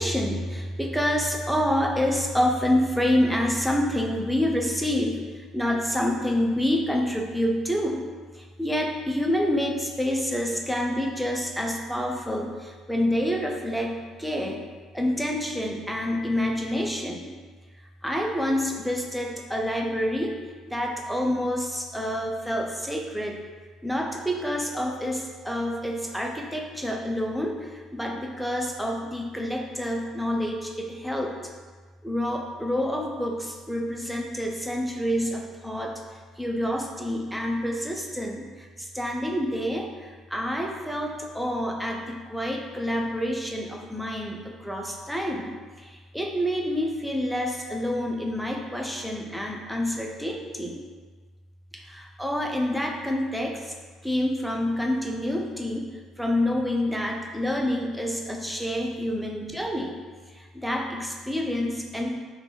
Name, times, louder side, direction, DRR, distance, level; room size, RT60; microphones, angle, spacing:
voice 1, 0.0-5.2 5.5-8.0 8.6-14.6 14.9-17.3 18.0-20.3 20.7-23.4 23.8-31.3 32.0-35.9 36.4-45.5 45.8-50.8 51.7-53.7 54.0-55.8 56.2-60.0 60.5-62.1, left 1 dB, ahead, 1 dB, 0.5 m, -27 dB
2.9 x 2.6 x 3.3 m, 1.4 s
supercardioid pair, 85°, 0 cm